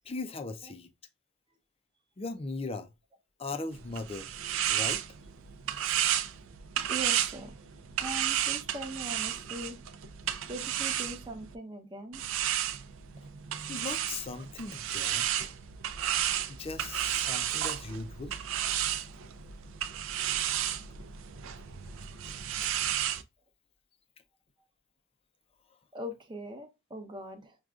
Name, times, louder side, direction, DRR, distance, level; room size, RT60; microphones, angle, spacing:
voice 1, 0.1-0.9 2.2-2.9 3.4-4.3 4.7-5.0 13.7-15.3 16.5-18.4, left 3 dB, 30° left, 0.4 m, -38 dB
sound 1, 3.7-11.5 12.1-23.2, right 11 dB, 75° right, 0.4 m, -33 dB
voice 2, 6.9-7.6 8.0-9.8 10.5-12.2 25.9-27.6, right 1 dB, 25° right, 0.7 m, -41 dB
6.2 x 2.3 x 2.3 m
head